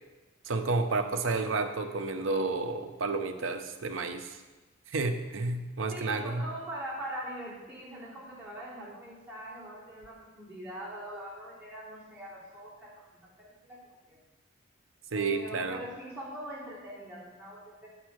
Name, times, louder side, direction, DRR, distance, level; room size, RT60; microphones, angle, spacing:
voice 1, 0.4-4.4 4.9-6.5 15.1-15.8, right 3 dB, 85° right, 7 dB, 0.7 m, -31 dB
voice 2, 5.9-14.2 15.1-17.9, right 1 dB, 10° right, -9 dB, 3.0 m, -42 dB
8.5 x 4.2 x 6.3 m, 1.2 s
head